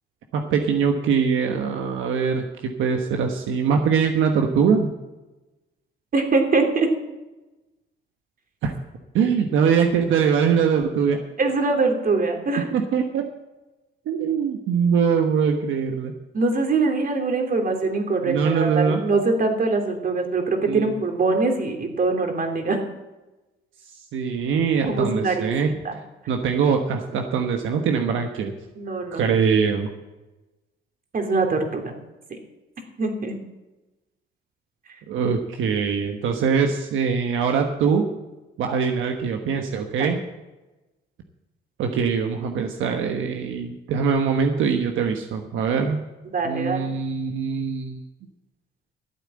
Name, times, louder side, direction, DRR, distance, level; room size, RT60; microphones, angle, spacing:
voice 1, 0.3-4.9 8.6-8.7 9.1-11.2 12.7-13.2 14.1-16.1 18.2-19.0 20.7-20.9 24.1-25.7 26.3-28.5 29.1-29.9 35.1-38.1 38.6-40.2 41.8-46.0 46.4-48.0, right 6 dB, 85° right, 4 dB, 1.2 m, -22 dB
voice 2, 6.1-6.9 11.4-12.7 16.3-22.8 24.9-25.9 28.8-29.2 31.1-31.9 32.3-32.4 33.0-33.4 40.0-40.1 46.3-46.9, right 3 dB, 45° right, 4 dB, 3.0 m, -23 dB
13.5 x 8.5 x 7.6 m, 1.1 s
cardioid pair, 90°, 20 cm